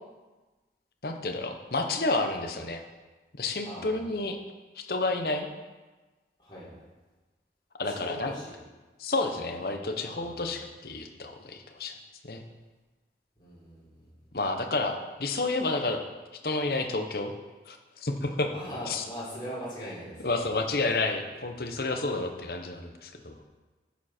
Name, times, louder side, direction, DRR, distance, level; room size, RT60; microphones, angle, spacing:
voice 1, 1.0-2.8 3.4-4.4 4.7-5.5 7.8-8.3 9.0-11.9 12.2-12.4 14.3-16.0 16.4-17.3 17.7-18.5 18.9-19.0 20.2-23.4, left 2 dB, 55° left, 5 dB, 0.9 m, -30 dB
voice 2, 3.6-4.0 6.4-6.7 7.9-8.5 10.0-10.4 13.4-14.1 18.5-20.7 21.4-21.9, equal, 25° left, -8 dB, 3.7 m, -41 dB
11.0 x 7.3 x 4.4 m, 1.2 s
head